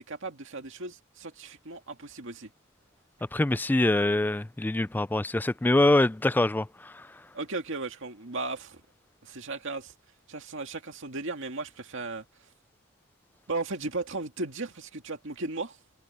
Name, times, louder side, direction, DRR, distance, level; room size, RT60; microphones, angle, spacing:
voice 1, 0.0-2.5 7.3-8.8 9.2-9.9 10.3-12.2 13.5-15.8, right 3 dB, 60° right, 2.3 m, -36 dB
voice 2, 3.3-7.2, left 2 dB, 10° left, 0.3 m, -24 dB
head